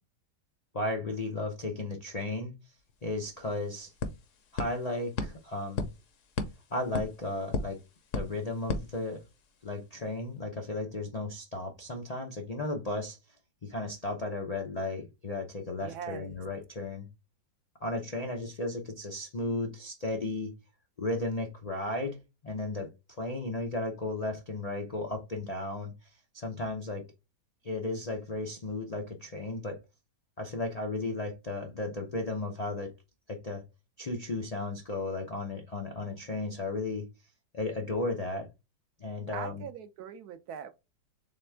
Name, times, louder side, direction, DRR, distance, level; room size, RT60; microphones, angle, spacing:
voice 1, 0.7-2.5 3.0-3.9 4.5-5.9 6.7-7.8 8.1-9.2 9.6-13.2 13.6-17.1 17.8-20.5 21.0-22.9 23.2-27.1 27.6-29.8 30.4-32.9 33.3-33.6 34.0-37.1 37.5-38.5 39.0-39.6, left 2 dB, 85° left, 0.3 m, -34 dB
sound 1, 2.9-3.0 3.2-9.6, left 3 dB, 60° left, 0.9 m, -37 dB
voice 2, 15.8-16.4 39.3-40.7, right 8 dB, 70° right, 1.0 m, -41 dB
4.2 x 3.5 x 3.3 m
omnidirectional pair, 2.0 m